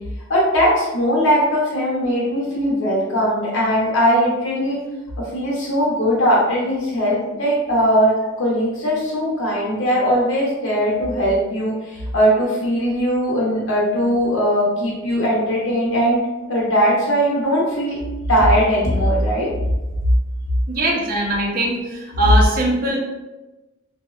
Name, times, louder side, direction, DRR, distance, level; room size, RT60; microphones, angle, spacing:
voice 1, 0.3-4.8 5.2-16.2 16.5-18.0 18.3-19.5 22.2-22.3, equal, 80° left, -5 dB, 0.6 m, -19 dB
voice 2, 20.7-21.8 22.2-23.0, right 1 dB, 45° right, -1 dB, 0.5 m, -20 dB
2.6 x 2.0 x 2.3 m, 1.1 s
head